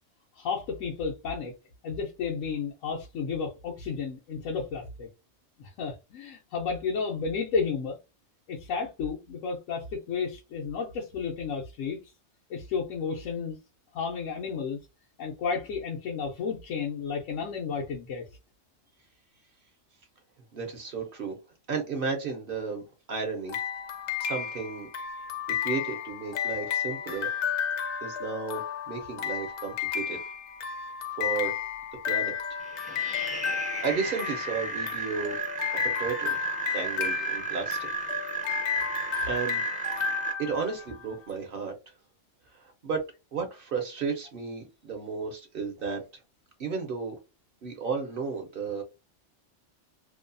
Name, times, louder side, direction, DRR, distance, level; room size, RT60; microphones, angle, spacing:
voice 1, 0.4-1.5 1.8-5.1 5.6-8.0 8.5-12.0 12.5-13.6 13.9-14.8 15.2-18.3, left 5 dB, 90° left, 1.1 m, -32 dB
voice 2, 20.5-21.4 21.7-22.8 23.1-23.6 24.2-24.9 25.6-27.3 28.0-30.2 31.2-31.6 32.1-32.6 33.3-35.4 35.7-36.4 36.7-37.9 39.0-39.6 40.4-41.7 42.5-43.0 43.3-46.0 46.6-47.1 47.6-48.8, right 5 dB, 55° right, 0.8 m, -33 dB
sound 1, 23.5-41.2, left 8 dB, 70° left, 0.9 m, -33 dB
sound 2, 32.6-40.3, right 5 dB, 10° right, 0.4 m, -34 dB
2.7 x 2.2 x 2.5 m
omnidirectional pair, 1.3 m